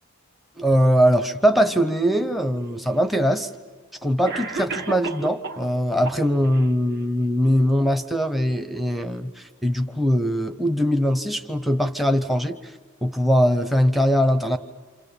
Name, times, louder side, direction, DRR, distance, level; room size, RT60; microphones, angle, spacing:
voice 1, 0.6-3.5 4.0-12.6 13.0-14.6, equal, ahead, 9 dB, 0.8 m, -21 dB
Cough, 2.5-2.6 3.6-3.7 4.2-5.7 6.0-6.7, right 4 dB, 50° right, 1.5 m, -32 dB
28.0 x 28.0 x 7.0 m, 1.4 s
head